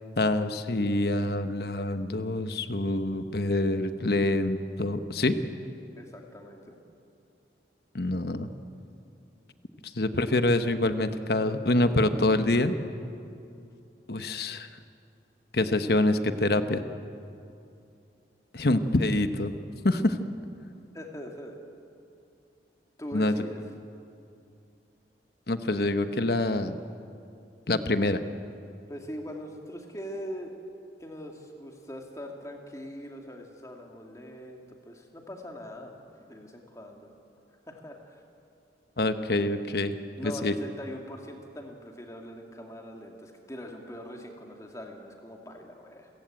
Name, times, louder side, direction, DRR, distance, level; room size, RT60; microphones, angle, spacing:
voice 1, 0.2-5.4 7.9-8.5 9.9-12.7 14.1-14.7 15.5-16.8 18.5-19.5 19.8-20.2 23.1-23.3 25.5-26.8 27.7-28.2 39.0-39.9 40.2-40.5, left 2 dB, 60° left, 9 dB, 1.1 m, -26 dB
voice 2, 6.0-6.8 20.9-21.6 23.0-23.6 28.9-30.5 31.0-37.1 37.7-38.2 40.2-46.1, equal, 20° left, 2 dB, 2.5 m, -42 dB
29.5 x 15.5 x 9.0 m, 2.6 s
head